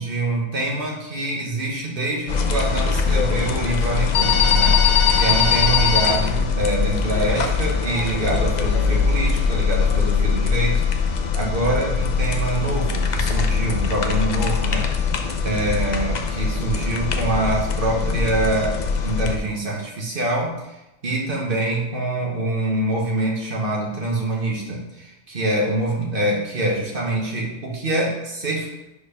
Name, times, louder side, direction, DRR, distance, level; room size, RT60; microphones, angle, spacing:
voice 1, 0.0-10.8 11.3-14.9 15.4-28.7, right 2 dB, 50° right, -1 dB, 1.4 m, -25 dB
sound 1, 2.3-19.4, left 5 dB, 50° left, 0.6 m, -21 dB
4.9 x 4.6 x 5.0 m, 0.94 s
omnidirectional pair, 1.2 m